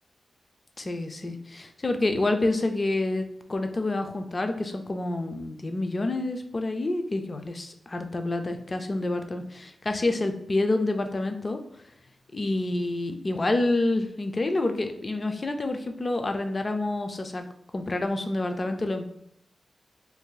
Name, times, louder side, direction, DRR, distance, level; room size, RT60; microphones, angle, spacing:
voice 1, 0.8-11.6 12.3-17.4 17.7-19.1, left 2 dB, 35° left, 6 dB, 0.4 m, -28 dB
2.6 x 2.4 x 3.8 m, 0.73 s
cardioid pair, 80°, 0 cm